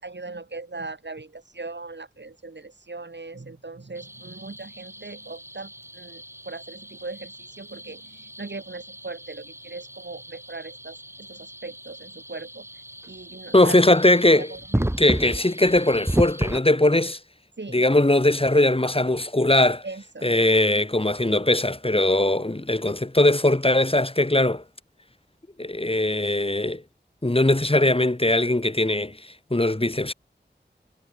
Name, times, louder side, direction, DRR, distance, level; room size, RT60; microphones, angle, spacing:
voice 1, 0.0-12.7 13.1-13.8 14.3-14.9 17.6-17.8 19.8-20.3, right 3 dB, 75° right, 4.9 m, -39 dB
sound 1, 3.9-16.6, right 1 dB, 15° right, 4.4 m, -34 dB
voice 2, 13.5-14.5 15.0-17.2 17.7-19.8 20.2-24.6 25.6-26.8 27.2-29.2 29.5-30.1, left 1 dB, 30° left, 2.6 m, -20 dB
wide cardioid pair, 40°, 18 cm